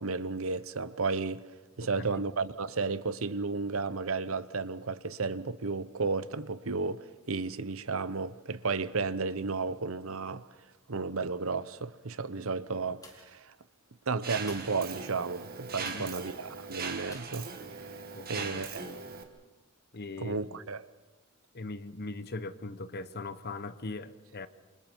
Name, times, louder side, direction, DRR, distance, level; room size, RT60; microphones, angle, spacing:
voice 1, 0.0-1.4 1.8-10.4 10.9-13.5 14.1-18.0 18.3-18.9 20.2-20.8, right 4 dB, 70° right, 0.9 m, -33 dB
voice 2, 1.8-2.2 15.8-16.1 18.1-19.0 19.9-20.6 21.5-24.5, left 3 dB, 50° left, 1.0 m, -41 dB
sound 1, 13.0-13.5 14.3-16.3 17.1-17.5 18.0-18.1, left 3 dB, 15° left, 3.0 m, -54 dB
Mechanisms, 14.2-19.2, right 5 dB, 45° right, 2.1 m, -40 dB
28.0 x 27.0 x 4.6 m
head